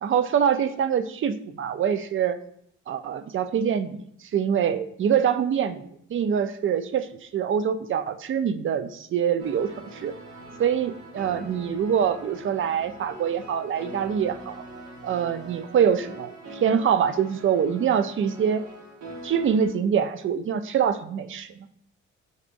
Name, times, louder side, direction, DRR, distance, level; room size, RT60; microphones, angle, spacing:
voice 1, 0.0-2.4 2.9-4.0 4.3-5.8 6.1-7.1 7.3-10.1 10.6-14.6 15.0-18.6 19.2-21.7, right 8 dB, 45° right, 11 dB, 0.4 m, -24 dB
sound 1, 9.4-19.7, right 1 dB, 75° right, 1.2 m, -43 dB
4.6 x 4.1 x 2.6 m, 0.70 s
cardioid pair, 90°, 30 cm